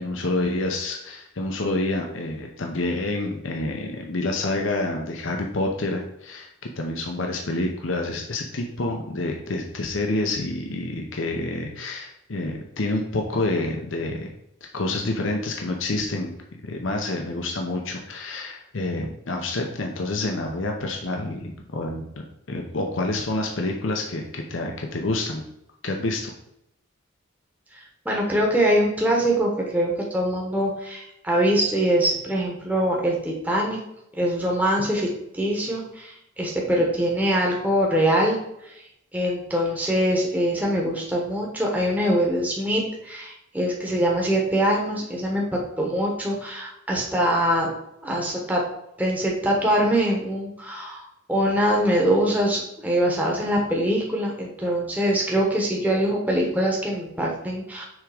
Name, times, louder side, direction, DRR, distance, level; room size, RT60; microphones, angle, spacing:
voice 1, 0.0-14.3 14.7-16.3 16.6-22.0 22.5-25.4 25.8-26.3, left 2 dB, 70° left, 2 dB, 0.8 m, -28 dB
voice 2, 27.7-33.8 34.1-38.4 38.6-38.7 39.1-47.7 48.0-48.6 49.0-57.8, equal, 10° right, -2 dB, 1.1 m, -23 dB
6.4 x 3.6 x 4.9 m, 0.81 s
head